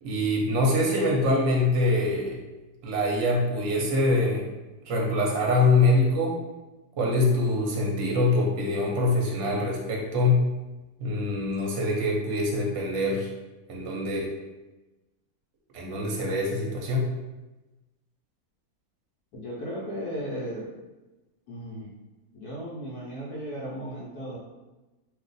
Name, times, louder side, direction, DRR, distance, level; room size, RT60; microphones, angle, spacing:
voice 1, 0.0-2.4 2.8-4.5 4.9-6.4 7.0-10.5 11.0-13.3 13.7-14.3 15.7-17.1, left 2 dB, 60° right, -1 dB, 0.9 m, -24 dB
voice 2, 19.3-20.7 21.5-21.9 22.3-24.4, equal, 80° left, -5 dB, 1.1 m, -35 dB
2.6 x 2.4 x 3.8 m, 1.1 s
omnidirectional pair, 1.6 m